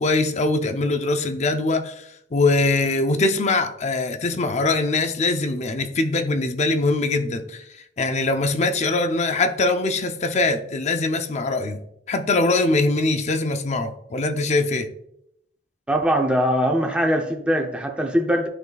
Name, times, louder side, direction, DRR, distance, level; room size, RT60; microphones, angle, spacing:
voice 1, 0.0-7.7 8.0-11.8 12.1-14.9, left 2 dB, 40° left, 0.5 m, -22 dB
voice 2, 15.9-18.5, equal, 5° right, 0.5 m, -21 dB
11.0 x 4.0 x 2.3 m
head